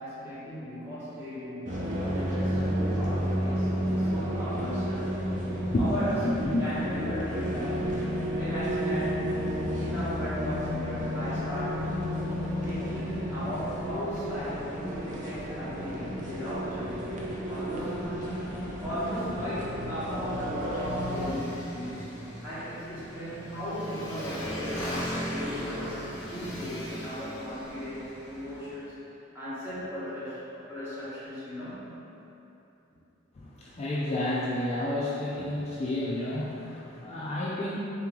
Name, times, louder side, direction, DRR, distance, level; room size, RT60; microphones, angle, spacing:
voice 1, 0.0-5.1 5.8-9.3 9.8-11.8 12.6-18.3 18.8-22.1 22.4-28.9 29.3-31.9, equal, 10° right, -14 dB, 1.4 m, -36 dB
sound 1, 1.7-21.3, equal, 40° right, 0.6 m, -32 dB
voice 2, 5.7-6.6 33.4-37.8, left 1 dB, 30° left, -7 dB, 0.4 m, -30 dB
Motorcycle, 18.1-28.8, equal, 15° left, 1.3 m, -39 dB
3.6 x 3.0 x 3.6 m, 2.9 s
head